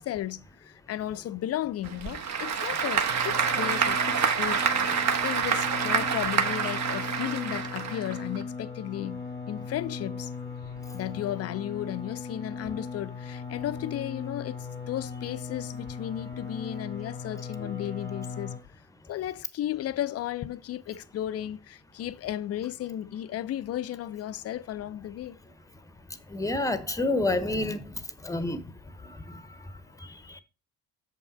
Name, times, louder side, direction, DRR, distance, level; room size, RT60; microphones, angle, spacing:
voice 1, 0.0-4.6 5.2-10.3 10.9-18.6 19.1-25.4, left 12 dB, 35° left, 0.5 m, -34 dB
Applause / Crowd, 1.8-8.4, right 6 dB, 35° right, 1.0 m, -27 dB
sound 1, 3.1-18.6, left 4 dB, 75° right, 2.7 m, -38 dB
voice 2, 25.7-30.4, left 2 dB, 5° left, 0.8 m, -31 dB
7.1 x 5.5 x 4.3 m
figure-of-eight pair, 45°, 45 cm